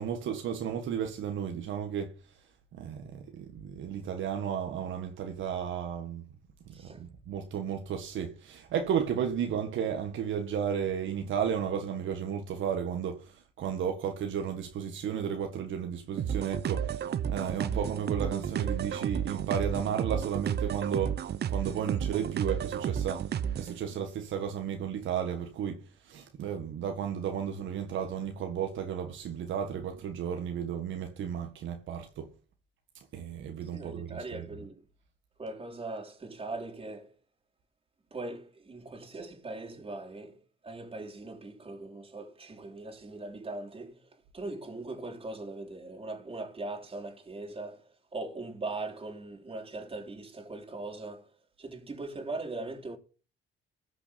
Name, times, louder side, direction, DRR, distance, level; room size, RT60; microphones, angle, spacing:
voice 1, 0.0-2.1 2.7-6.2 6.7-16.9 17.3-21.2 21.5-23.2 23.6-32.3 33.1-34.4, right 8 dB, 75° right, 1.6 m, -33 dB
sound 1, 16.2-23.8, right 9 dB, 55° right, 0.8 m, -32 dB
voice 2, 33.7-34.8 35.4-37.1 38.1-40.4 40.6-51.3 51.6-53.0, right 2 dB, 30° right, 3.5 m, -40 dB
14.0 x 6.1 x 7.0 m
cardioid pair, 90°, 20 cm